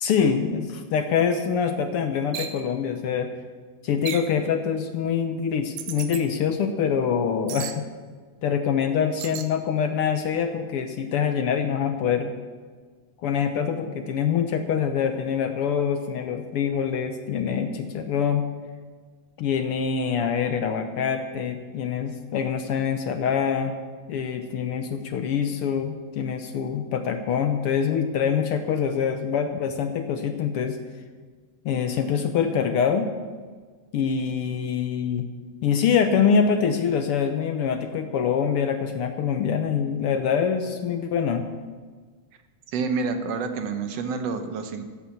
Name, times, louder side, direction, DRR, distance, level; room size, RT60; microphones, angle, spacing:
voice 1, 0.0-3.3 3.8-7.8 8.4-12.3 13.2-18.4 19.4-23.7 24.1-30.8 31.6-33.1 33.9-35.3 35.6-41.5, left 7 dB, 75° left, 7 dB, 1.3 m, -25 dB
sound 1, 2.3-2.6 4.1-4.4 5.8-6.2 7.5-7.8 9.2-9.5, right 10 dB, 90° right, 2.4 m, -34 dB
voice 2, 42.7-44.8, right 4 dB, 65° right, 7 dB, 1.9 m, -28 dB
15.0 x 8.4 x 7.2 m, 1.5 s
omnidirectional pair, 3.5 m